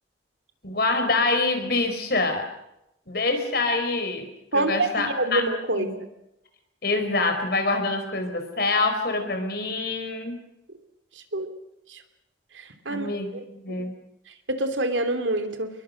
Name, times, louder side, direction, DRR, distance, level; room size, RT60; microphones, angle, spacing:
voice 1, 0.6-2.5 3.1-5.4 5.8-6.0 6.8-10.4 12.9-14.0, left 3 dB, 55° left, 6 dB, 4.3 m, -26 dB
voice 2, 4.5-6.0 11.3-11.5 11.9-12.0 12.5-13.1 13.7-13.8 14.5-15.7, right 2 dB, 80° right, 7 dB, 3.0 m, -26 dB
28.5 x 21.5 x 6.6 m, 0.86 s
head